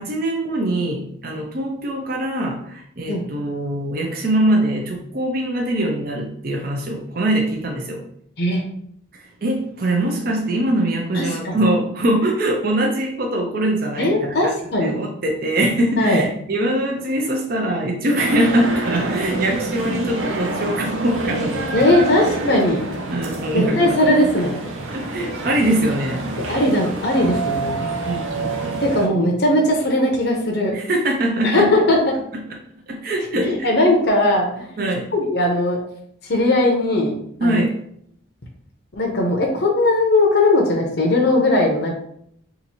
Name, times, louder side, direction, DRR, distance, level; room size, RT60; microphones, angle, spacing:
voice 1, 0.0-8.0 9.1-21.9 22.2-22.3 23.1-24.0 24.9-26.4 28.0-28.9 30.7-31.7 32.9-33.7 34.8-35.1 37.4-37.7, right 1 dB, 50° right, 1 dB, 0.5 m, -22 dB
voice 2, 11.1-11.6 14.0-15.0 16.0-16.2 21.7-22.9 23.5-24.6 26.5-27.8 28.8-30.7 31.4-32.1 33.4-34.7 35.1-35.8 36.2-37.6 38.9-41.9, left 1 dB, 55° left, 0 dB, 0.7 m, -18 dB
sound 1, 18.2-29.1, right 2 dB, 90° right, 0.6 m, -27 dB
2.9 x 2.6 x 4.1 m, 0.69 s
head